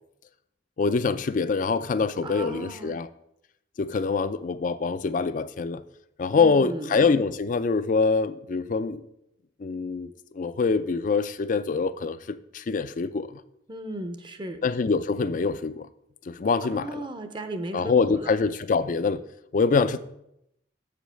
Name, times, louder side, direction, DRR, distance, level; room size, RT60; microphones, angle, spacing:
voice 1, 0.8-3.1 3.8-5.8 6.2-9.0 9.6-13.4 14.6-15.9 16.3-17.0 17.7-19.2 19.5-20.0, left 4 dB, 45° left, 14 dB, 0.4 m, -25 dB
voice 2, 2.2-3.0 6.3-6.9 13.7-14.6 16.7-18.3, right 1 dB, 25° right, 8 dB, 0.6 m, -36 dB
7.1 x 5.1 x 5.6 m, 0.79 s
head